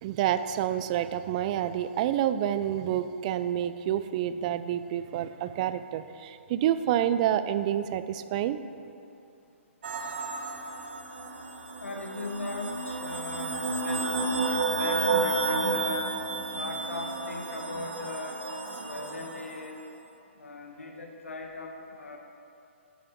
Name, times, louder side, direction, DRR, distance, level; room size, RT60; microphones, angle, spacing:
voice 1, 0.0-8.6, right 11 dB, 35° right, 12 dB, 0.3 m, -28 dB
sound 1, 9.8-19.5, right 3 dB, 55° right, 1.2 m, -31 dB
voice 2, 11.8-14.1 14.3-16.1 16.5-18.4 18.8-19.8 20.4-22.2, left 3 dB, 90° left, 2 dB, 1.2 m, -39 dB
9.6 x 6.1 x 4.6 m, 2.7 s
hypercardioid pair, 145°, 7 cm